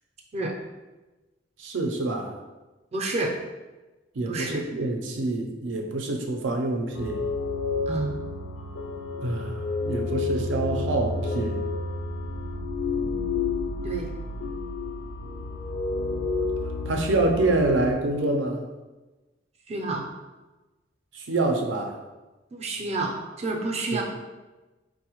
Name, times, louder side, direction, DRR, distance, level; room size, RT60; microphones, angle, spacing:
voice 1, 1.6-2.4 4.1-7.2 9.2-11.6 16.9-18.6 21.1-22.0 23.9-24.0, right 2 dB, 90° right, 3 dB, 0.5 m, -26 dB
voice 2, 2.9-3.3 4.3-4.6 7.9-8.1 13.8-14.1 19.7-20.0 22.5-24.0, right 2 dB, 35° right, 1 dB, 0.4 m, -29 dB
sound 1, 6.9-17.9, left 3 dB, 75° left, 0.3 m, -30 dB
3.9 x 2.1 x 2.9 m, 1.1 s
head